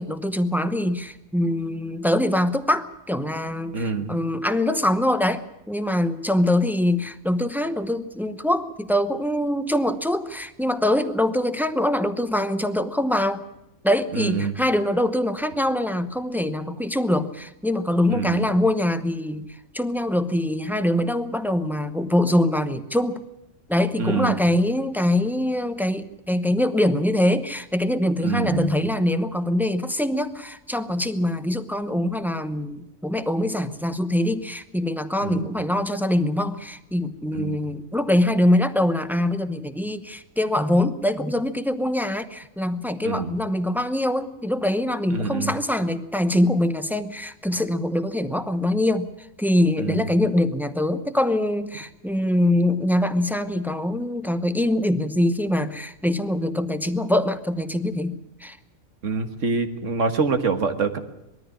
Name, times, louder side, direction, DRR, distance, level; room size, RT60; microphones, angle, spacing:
voice 1, 0.0-13.4 13.8-19.5 19.7-23.2 23.7-49.1 49.4-58.6, left 1 dB, ahead, 10 dB, 0.7 m, -23 dB
voice 2, 3.7-4.2 14.1-14.5 18.1-18.5 24.0-24.4 28.2-28.8 35.2-35.5 37.3-37.6 43.0-43.3 45.1-45.5 49.8-50.1 59.0-61.0, right 4 dB, 65° right, 8 dB, 1.8 m, -25 dB
21.0 x 13.5 x 9.8 m, 0.91 s
omnidirectional pair, 1.4 m